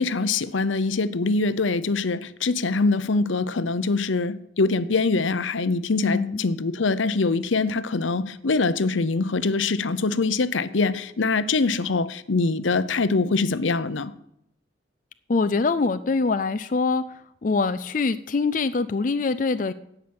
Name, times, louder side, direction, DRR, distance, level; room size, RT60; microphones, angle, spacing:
voice 1, 0.0-14.1, left 3 dB, 85° left, 0.7 m, -24 dB
voice 2, 6.0-6.4 15.3-19.7, left 4 dB, 45° left, 0.4 m, -24 dB
16.0 x 5.9 x 8.7 m
head